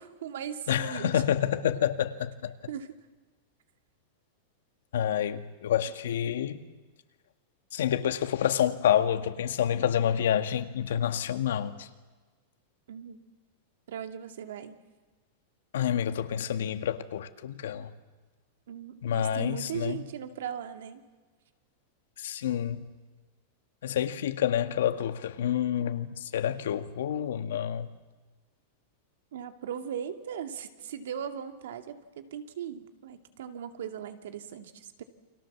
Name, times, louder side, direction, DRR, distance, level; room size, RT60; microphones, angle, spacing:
voice 1, 0.0-1.2 2.7-2.9 12.9-13.2 13.9-14.7 18.7-21.0 29.3-35.0, right 8 dB, 75° right, 2.4 m, -38 dB
voice 2, 0.7-2.5 4.9-6.6 7.7-11.9 15.7-17.9 19.0-20.0 22.2-22.9 23.8-27.9, left 10 dB, 90° left, 1.9 m, -28 dB
29.5 x 25.5 x 7.4 m
supercardioid pair, 180°, 0 cm